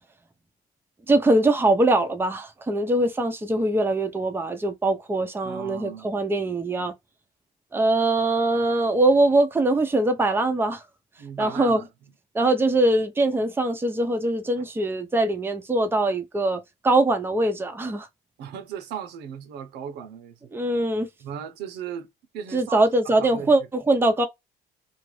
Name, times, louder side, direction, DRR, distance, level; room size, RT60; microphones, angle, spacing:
voice 1, 1.1-6.9 7.7-10.8 11.4-11.8 12.3-18.1 20.5-21.1 22.5-24.3, right 2 dB, 15° right, 0.7 m, -22 dB
voice 2, 5.4-6.0 11.2-11.9 18.4-20.3 21.2-22.1 22.3-23.5, right 8 dB, 90° right, 0.8 m, -36 dB
2.6 x 2.5 x 3.2 m
cardioid pair, 110°, 17 cm